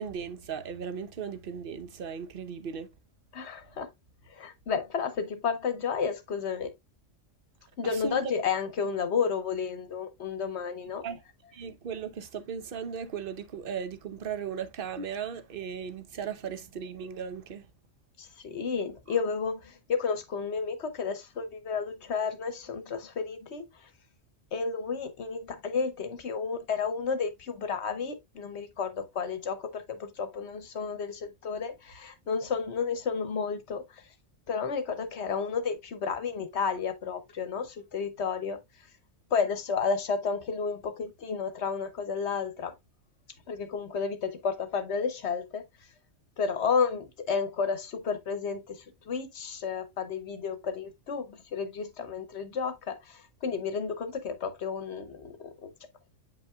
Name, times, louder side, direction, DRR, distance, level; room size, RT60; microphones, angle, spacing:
voice 1, 0.0-2.9 7.8-8.2 11.0-11.2 11.5-17.7, right 7 dB, 50° right, 0.9 m, -37 dB
voice 2, 3.3-3.9 4.3-6.7 7.8-11.0 18.2-23.6 24.5-33.8 34.5-38.6 39.3-42.7 43.5-45.6 46.4-55.7, left 5 dB, 60° left, 1.1 m, -32 dB
7.9 x 5.4 x 2.3 m
omnidirectional pair, 1.3 m